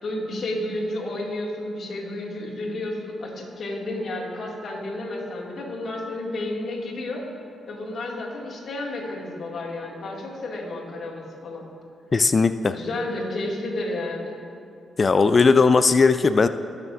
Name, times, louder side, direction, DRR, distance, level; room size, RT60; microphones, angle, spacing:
voice 1, 0.0-7.2 7.6-11.7 12.7-14.4, left 1 dB, 60° left, -3 dB, 2.3 m, -31 dB
voice 2, 12.1-12.8 15.0-16.5, left 4 dB, 45° left, 12 dB, 0.4 m, -17 dB
19.0 x 6.7 x 2.6 m, 2.4 s
hypercardioid pair, 40°, 0 cm